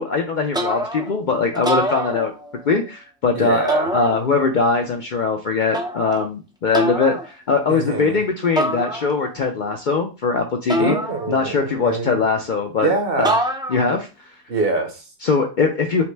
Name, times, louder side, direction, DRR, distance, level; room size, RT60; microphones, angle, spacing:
voice 1, 0.0-2.3 2.6-11.0 11.3-12.9 13.7-14.1 15.2-16.0, left 4 dB, 55° left, 3 dB, 0.5 m, -21 dB
sound 1, 0.5-1.2 1.5-2.7 3.7-4.6 5.7-6.3 6.7-7.3 8.6-9.4 10.7-11.7 13.2-14.0, right 1 dB, 5° right, 0.3 m, -25 dB
voice 2, 3.3-3.9 7.7-8.2 10.8-12.2 12.8-13.4 14.5-15.0, right 3 dB, 55° right, 4 dB, 1.0 m, -24 dB
5.7 x 2.1 x 3.2 m, 0.31 s
omnidirectional pair, 1.2 m